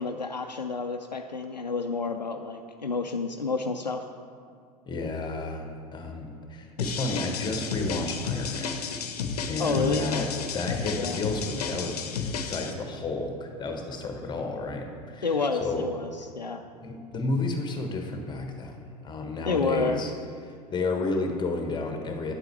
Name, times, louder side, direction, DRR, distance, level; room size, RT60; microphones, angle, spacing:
voice 1, 0.0-4.0 9.6-10.1 10.9-11.2 15.2-16.1 16.3-16.6 19.4-20.0, left 4 dB, 90° left, 5 dB, 0.4 m, -29 dB
voice 2, 4.9-8.8 9.4-15.9 16.8-20.1 20.4-22.3, left 3 dB, 20° left, 4 dB, 1.2 m, -32 dB
sound 1, 6.8-12.7, left 5 dB, 65° left, 0.8 m, -32 dB
9.8 x 7.8 x 4.5 m, 2.2 s
figure-of-eight pair, 80°, 21 cm